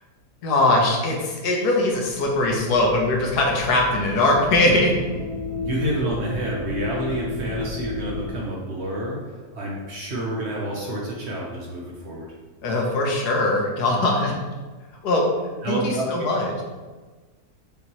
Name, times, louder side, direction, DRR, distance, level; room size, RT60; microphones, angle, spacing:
voice 1, 0.4-4.9 12.6-14.3 15.0-15.2 15.7-16.6, left 2 dB, 85° left, 0 dB, 1.4 m, -21 dB
sound 1, 2.0-8.3, left 3 dB, 15° right, 1.2 m, -33 dB
voice 2, 5.6-12.3 15.6-16.1, right 1 dB, 60° right, -3 dB, 0.8 m, -29 dB
5.2 x 2.8 x 3.0 m, 1.3 s
omnidirectional pair, 1.7 m